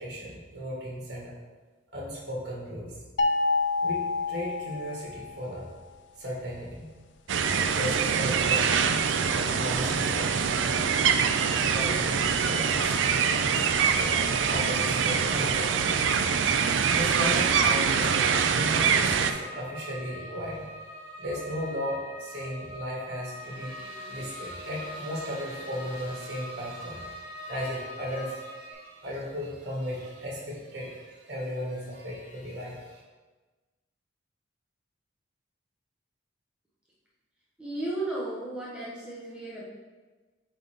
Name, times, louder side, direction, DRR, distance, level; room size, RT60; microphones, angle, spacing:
voice 1, 0.0-1.3 1.9-3.0 3.8-5.7 6.2-6.9 7.4-7.5 7.7-10.4 11.7-13.0 13.6-13.7 13.9-15.8 16.9-20.9 21.2-33.0, equal, 55° right, -4 dB, 1.9 m, -36 dB
sound 1, 3.2-5.4, left 3 dB, 70° left, 0.5 m, -28 dB
sound 2, 7.3-19.3, right 6 dB, 80° right, 0.4 m, -24 dB
sound 3, 12.9-28.7, equal, 25° right, 1.7 m, -43 dB
voice 2, 37.6-39.6, right 2 dB, 5° right, -8 dB, 1.2 m, -34 dB
7.9 x 3.9 x 3.6 m, 1.3 s
head